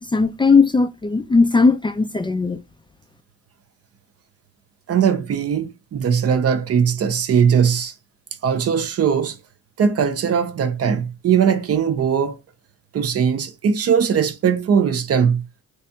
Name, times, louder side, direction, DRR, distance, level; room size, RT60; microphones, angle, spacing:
voice 1, 0.1-2.6, left 4 dB, 15° left, 0.4 m, -17 dB
voice 2, 4.9-7.9 8.4-9.4 9.8-12.4 12.9-15.4, right 7 dB, 50° right, 0.7 m, -19 dB
3.4 x 3.1 x 2.8 m
cardioid pair, 90°, 30 cm